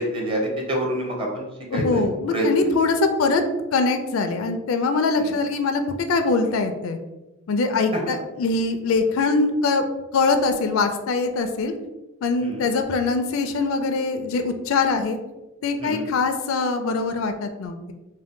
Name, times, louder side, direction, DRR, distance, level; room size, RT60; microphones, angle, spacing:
voice 1, 0.0-1.4 1.7-2.0 2.3-2.5 5.2-5.3 12.4-12.6 15.8-16.0, right 1 dB, 25° right, -1 dB, 0.8 m, -26 dB
voice 2, 1.7-3.4 3.7-5.8 6.1-7.0 7.5-9.8 10.1-11.7 12.2-15.2 15.6-17.9, left 3 dB, 70° left, 7 dB, 0.4 m, -22 dB
3.6 x 2.2 x 3.6 m, 1.0 s
head